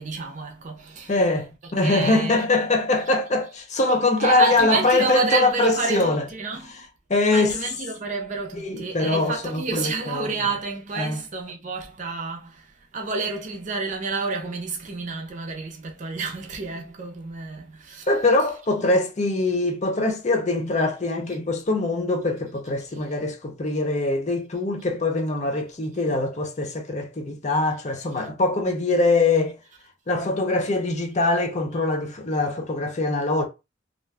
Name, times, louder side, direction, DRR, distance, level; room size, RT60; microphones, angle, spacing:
voice 1, 0.0-1.1 1.8-2.4 4.2-6.8 7.3-18.1, right 4 dB, 40° right, 0.5 m, -29 dB
voice 2, 1.1-6.2 7.1-7.5 8.5-10.3 11.0-11.2 18.1-29.6 30.1-33.5, left 2 dB, 35° left, 0.6 m, -23 dB
2.5 x 2.2 x 3.3 m
head